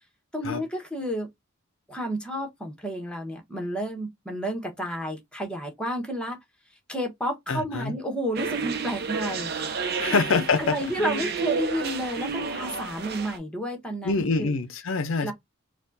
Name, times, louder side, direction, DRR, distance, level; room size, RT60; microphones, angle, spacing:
voice 1, 0.3-1.3 1.9-6.4 6.9-9.5 10.1-10.2 10.6-14.5 15.2-15.3, equal, 5° left, 1.3 m, -31 dB
voice 2, 7.5-7.9 10.0-10.7 14.0-15.3, left 4 dB, 70° left, 0.6 m, -25 dB
sound 1, 8.3-13.4, right 5 dB, 50° right, 0.8 m, -31 dB
4.2 x 2.4 x 3.9 m
head